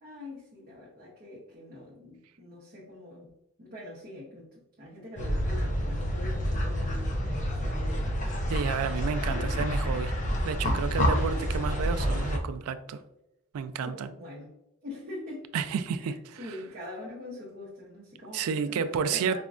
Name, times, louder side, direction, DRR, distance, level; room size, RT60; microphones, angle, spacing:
voice 1, 0.0-3.3 3.6-8.3 9.3-9.7 11.1-11.5 13.8-14.5 14.8-15.5 15.9-19.4, left 1 dB, 40° right, -6 dB, 0.7 m, -43 dB
sound 1, 5.2-12.4, equal, 35° left, 0.5 m, -28 dB
voice 2, 8.5-10.1 10.4-13.0 13.5-14.1 15.5-16.6 18.3-19.4, right 6 dB, 80° right, 12 dB, 0.3 m, -31 dB
4.9 x 2.2 x 2.4 m, 0.89 s
head